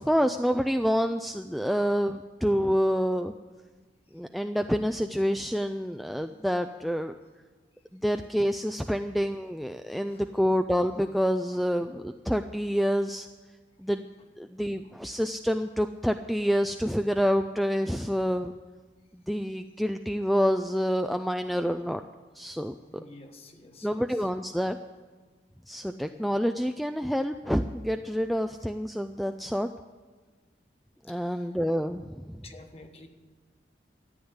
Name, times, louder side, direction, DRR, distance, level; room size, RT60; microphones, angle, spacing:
voice 1, 0.0-3.3 4.1-7.1 7.9-13.3 13.8-14.1 14.4-18.5 19.3-22.0 22.3-22.7 23.8-24.8 25.7-29.7 31.1-32.2, equal, ahead, 7 dB, 0.3 m, -27 dB
voice 2, 22.9-24.3 31.1-31.6 32.4-33.1, left 2 dB, 35° left, 5 dB, 1.4 m, -51 dB
13.5 x 9.7 x 8.1 m, 1.4 s
head